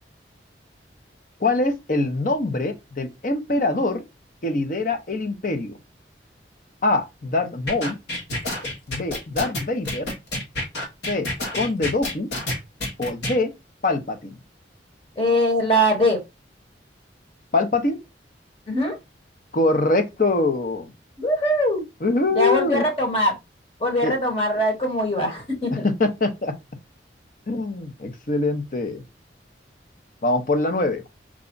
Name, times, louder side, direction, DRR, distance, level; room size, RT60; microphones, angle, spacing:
voice 1, 1.4-4.0 4.4-5.8 6.8-8.0 8.9-10.1 11.1-11.3 11.5-12.3 13.0-13.5 13.8-14.3 17.5-18.0 19.5-20.9 22.0-22.8 24.0-24.2 25.7-26.6 27.5-29.0 30.2-31.0, left 2 dB, 45° left, 0.7 m, -23 dB
sound 1, 7.7-13.4, left 1 dB, 70° left, 1.5 m, -28 dB
voice 2, 15.2-16.2 18.7-19.0 21.2-21.8 22.3-23.3 23.8-25.9, equal, 30° left, 1.4 m, -21 dB
4.8 x 2.3 x 3.8 m
head